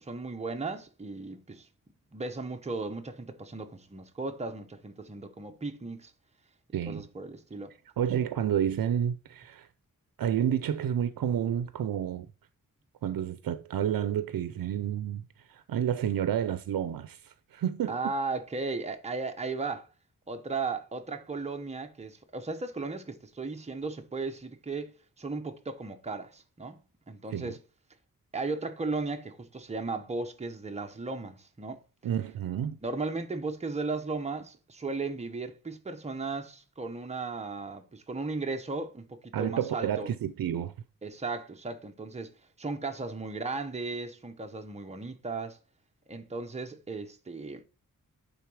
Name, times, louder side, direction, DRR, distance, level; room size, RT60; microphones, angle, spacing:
voice 1, 0.0-1.7 2.1-6.1 6.9-7.7 17.9-19.9 20.3-24.9 25.2-26.8 27.1-27.6 28.3-31.8 32.8-40.1 41.0-42.3 42.6-45.6 46.1-47.6, right 3 dB, 20° right, 0.8 m, -36 dB
voice 2, 6.7-7.1 8.0-9.7 10.2-12.3 13.0-18.0 27.3-27.5 32.0-32.8 39.3-40.7, right 9 dB, 85° right, 0.5 m, -30 dB
9.0 x 3.9 x 4.8 m
wide cardioid pair, 120°, 34 cm